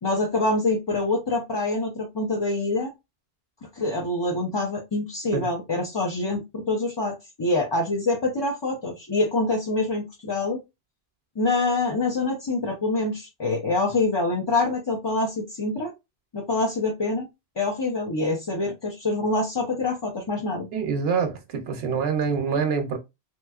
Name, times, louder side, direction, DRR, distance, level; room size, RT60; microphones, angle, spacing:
voice 1, 0.0-2.9 3.7-10.6 11.4-15.9 16.3-17.3 17.6-20.7, left 2 dB, 30° left, 0.6 m, -25 dB
voice 2, 20.7-23.0, right 6 dB, 75° right, 0.9 m, -25 dB
3.3 x 3.0 x 2.3 m
omnidirectional pair, 1.0 m